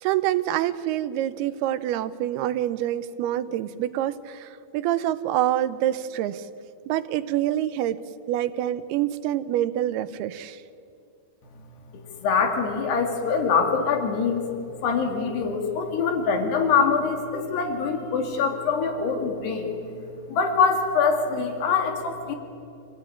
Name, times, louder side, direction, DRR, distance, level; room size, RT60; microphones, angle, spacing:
voice 1, 0.0-6.5 6.9-8.0 8.3-10.6, right 12 dB, 80° right, 13 dB, 2.7 m, -26 dB
voice 2, 12.2-14.4 14.8-19.9 20.3-22.4, left 5 dB, 90° left, 4 dB, 4.4 m, -24 dB
27.0 x 17.0 x 9.9 m, 2.6 s
omnidirectional pair, 4.6 m